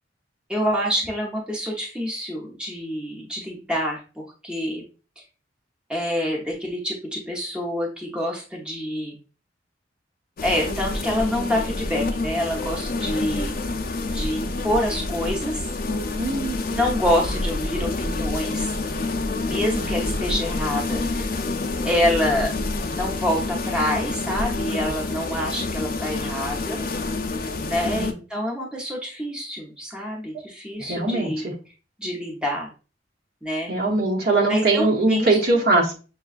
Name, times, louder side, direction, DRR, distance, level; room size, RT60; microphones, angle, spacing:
voice 1, 0.5-4.8 5.9-9.1 10.4-13.5 14.1-15.6 16.7-18.7 19.4-21.3 21.8-22.5 22.9-26.8 27.6-31.5 32.0-32.7 33.4-33.7 34.5-35.4, equal, 5° right, -2 dB, 0.8 m, -27 dB
sound 1, 10.4-28.1, left 2 dB, 55° left, 0.5 m, -28 dB
voice 2, 16.1-16.6 27.4-27.5 27.8-28.1 30.8-31.5 33.7-35.9, right 2 dB, 60° right, -1 dB, 1.1 m, -21 dB
6.4 x 2.3 x 2.4 m, 0.34 s
head